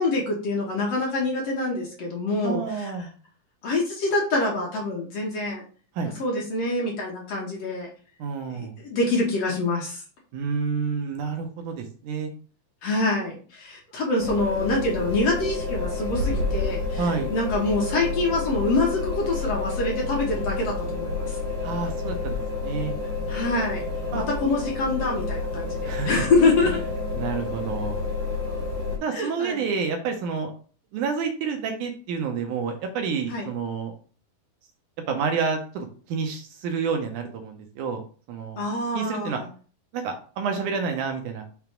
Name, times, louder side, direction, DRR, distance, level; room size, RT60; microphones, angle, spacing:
voice 1, 0.0-2.9 3.6-5.6 6.2-7.9 8.5-10.0 12.8-21.4 23.3-23.8 24.1-26.8 29.1-29.6 33.3-33.5 38.6-39.5, left 2 dB, 60° left, -2 dB, 1.9 m, -26 dB
voice 2, 2.4-3.1 6.0-6.1 8.2-8.8 10.3-12.3 17.0-17.3 21.6-22.9 24.1-24.3 25.8-26.1 27.1-28.0 29.0-30.5 30.9-33.9 35.1-38.0 38.3-38.6 38.9-39.4 39.9-41.5, right 5 dB, 75° right, 5 dB, 2.1 m, -29 dB
sound 1, 14.2-29.0, left 3 dB, 50° right, 2.8 m, -29 dB
5.9 x 3.7 x 4.5 m, 0.41 s
omnidirectional pair, 3.9 m